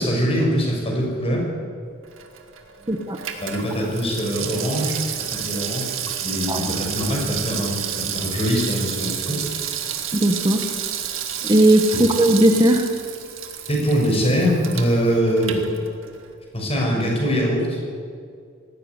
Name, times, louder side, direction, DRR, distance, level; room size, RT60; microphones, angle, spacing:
voice 1, 0.0-1.5 2.8-2.9 3.4-5.0 5.4-9.4 13.7-15.7 16.5-17.8, equal, 30° left, -1 dB, 6.2 m, -23 dB
Water tap faucet / Sink (filling or washing), 2.0-16.3 16.6-16.7, right 9 dB, 70° right, 2.1 m, -30 dB
voice 2, 10.1-10.6 11.4-12.9, right 1 dB, 20° right, 4 dB, 1.3 m, -17 dB
19.0 x 16.0 x 9.7 m, 2.1 s
head